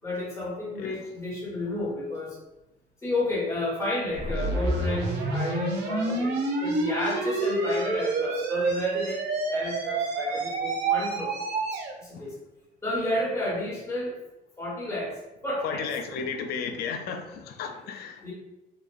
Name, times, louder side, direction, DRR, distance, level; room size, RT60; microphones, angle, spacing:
voice 1, 0.0-2.4 3.0-9.2 9.5-11.3 12.0-12.4 12.8-14.2 14.6-15.9 18.2-18.3, left 1 dB, 15° left, -7 dB, 1.3 m, -31 dB
sound 1, 4.2-11.9, right 3 dB, 80° right, 0.6 m, -28 dB
voice 2, 15.6-18.3, left 6 dB, 70° left, 5 dB, 0.4 m, -34 dB
2.8 x 2.3 x 2.4 m, 0.97 s
cardioid pair, 110°, 17 cm